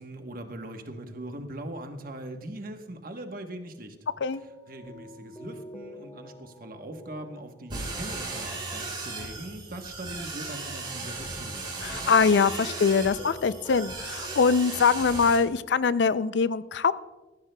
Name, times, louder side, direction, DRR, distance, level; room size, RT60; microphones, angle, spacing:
voice 1, 0.0-4.0 4.7-11.9, right 1 dB, 50° right, 5 dB, 1.1 m, -40 dB
sound 1, 0.9-2.3 4.3-10.0 11.9-14.8, equal, 15° left, 1.8 m, -48 dB
sound 2, 7.7-15.4, right 3 dB, 25° right, 4.1 m, -36 dB
voice 2, 11.8-16.9, left 5 dB, 65° left, 15 dB, 0.4 m, -23 dB
18.5 x 14.5 x 2.3 m, 1.2 s
head